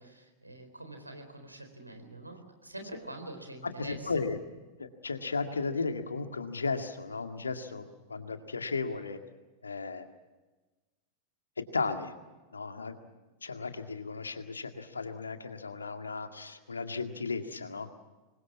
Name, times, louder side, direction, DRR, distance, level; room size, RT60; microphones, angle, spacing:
voice 1, 0.0-4.2, right 1 dB, 85° right, 5 dB, 4.1 m, -45 dB
voice 2, 3.8-4.4 4.8-9.2 9.6-10.1 11.7-12.1 12.5-12.9 13.4-17.9, left 4 dB, 75° left, 7 dB, 2.0 m, -35 dB
26.5 x 22.0 x 7.3 m, 1.2 s
figure-of-eight pair, 90°, 0 cm